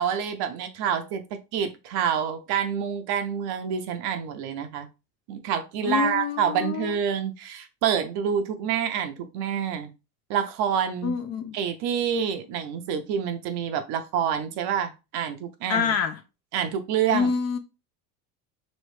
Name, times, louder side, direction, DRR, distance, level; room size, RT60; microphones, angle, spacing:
voice 1, 0.0-4.9 5.3-9.9 10.3-11.1 11.5-15.9 16.5-17.3, right 8 dB, 60° right, 0.8 m, -27 dB
voice 2, 5.8-7.0 11.0-11.6 15.7-16.2 17.1-17.6, left 6 dB, 35° left, 0.5 m, -26 dB
3.2 x 3.1 x 3.1 m
supercardioid pair, 100°, 46 cm